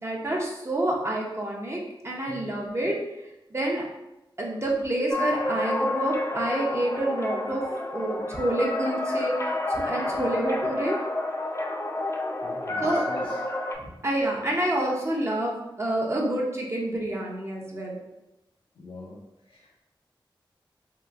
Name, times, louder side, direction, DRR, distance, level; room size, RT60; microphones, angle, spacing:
voice 1, 0.0-2.9 3.5-3.8 4.4-7.6 7.9-9.3 9.7-11.0 12.8-13.3 13.8-18.0, right 1 dB, 30° right, -2 dB, 0.7 m, -28 dB
sound 1, 5.1-13.7, left 2 dB, 35° left, 0.4 m, -29 dB
voice 2, 12.4-13.4 18.8-19.2 19.5-19.7, left 1 dB, 85° left, -4 dB, 0.5 m, -42 dB
3.3 x 2.8 x 2.4 m, 0.92 s
wide cardioid pair, 85°, 9 cm